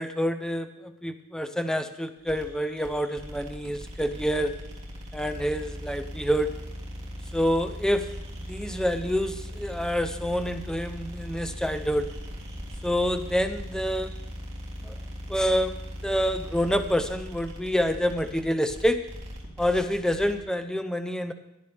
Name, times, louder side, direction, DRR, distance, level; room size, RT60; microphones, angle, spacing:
voice 1, 0.0-4.5 5.1-6.5 7.3-8.0 8.5-12.1 12.8-14.1 14.8-14.9 15.3-15.7 16.0-19.0 19.6-21.3, equal, 5° left, 8 dB, 0.8 m, -27 dB
sound 1, 2.2-20.4, equal, 30° right, 3.2 m, -39 dB
18.5 x 11.0 x 3.5 m, 0.92 s
head